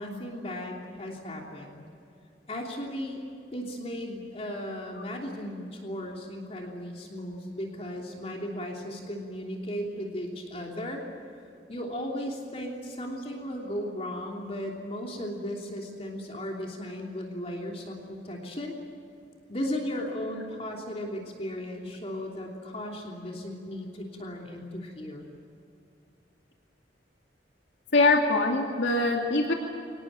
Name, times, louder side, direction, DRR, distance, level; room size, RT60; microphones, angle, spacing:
voice 1, 0.0-1.8 2.5-3.2 3.5-11.0 11.7-18.8 19.5-25.3, equal, 35° left, 0 dB, 3.1 m, -36 dB
voice 2, 27.9-29.5, left 2 dB, 80° left, 1 dB, 2.5 m, -23 dB
25.5 x 19.0 x 9.0 m, 2.6 s
head